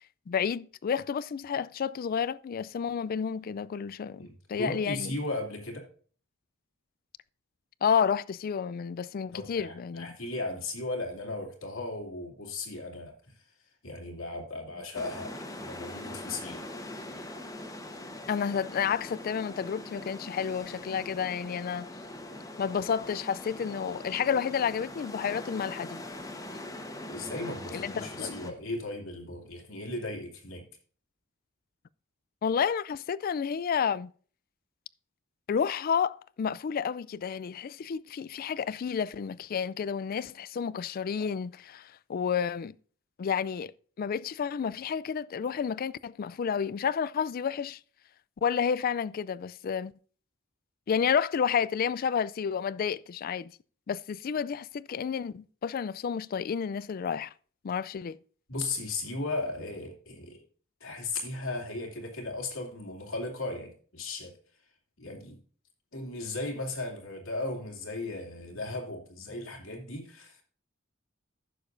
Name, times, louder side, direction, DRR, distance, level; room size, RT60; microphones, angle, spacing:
voice 1, 0.3-5.2 7.8-10.2 18.3-21.9 22.6-26.0 27.7-28.5 32.4-34.1 35.5-42.7 43.2-43.7 44.0-47.8 48.4-49.9 50.9-53.5 53.9-57.3 57.6-58.2, left 7 dB, 45° left, 0.3 m, -30 dB
voice 2, 4.2-5.8 9.3-13.1 13.8-16.7 27.1-30.6 58.5-60.4 60.8-64.3 65.0-65.4 65.9-70.4, left 2 dB, 85° left, 2.6 m, -36 dB
sound 1, 14.9-28.5, left 1 dB, 15° left, 1.2 m, -42 dB
15.0 x 6.8 x 2.6 m
head